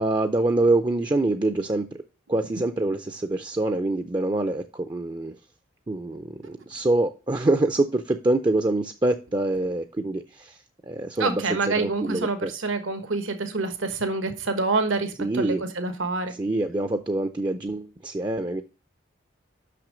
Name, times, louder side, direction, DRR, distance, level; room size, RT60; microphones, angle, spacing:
voice 1, 0.0-2.0 2.3-5.4 5.9-10.6 10.8-11.4 11.8-12.5 15.2-15.6 16.4-18.6, right 2 dB, 20° right, 8 dB, 0.4 m, -25 dB
voice 2, 11.2-16.3, right 3 dB, 85° right, 8 dB, 1.3 m, -27 dB
6.2 x 5.9 x 5.0 m, 0.33 s
head